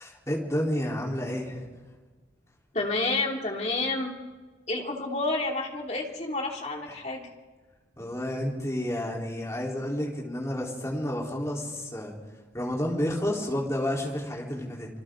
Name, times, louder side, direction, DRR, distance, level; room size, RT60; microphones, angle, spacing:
voice 1, 0.0-1.6 8.0-12.1 12.5-14.9, left 1 dB, 15° left, -3 dB, 3.8 m, -30 dB
voice 2, 2.7-4.1 4.7-7.3, left 2 dB, 35° left, 0 dB, 2.7 m, -29 dB
26.0 x 26.0 x 3.9 m, 1.3 s
head